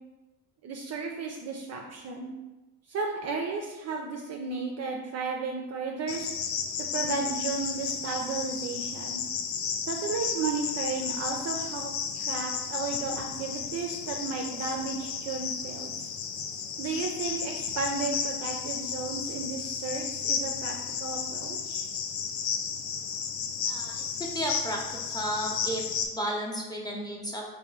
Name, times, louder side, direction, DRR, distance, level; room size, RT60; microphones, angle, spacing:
voice 1, 0.6-2.3 2.9-6.3 6.9-9.2 9.9-16.1 16.8-21.9, right 4 dB, 35° right, 1 dB, 0.4 m, -34 dB
Cricket, 6.1-26.1, left 6 dB, 40° left, 0.5 m, -33 dB
voice 2, 23.7-24.0 24.3-25.8 26.1-27.4, equal, 10° left, -1 dB, 0.7 m, -33 dB
3.0 x 2.6 x 3.7 m, 1.1 s
hypercardioid pair, 65°, 45 cm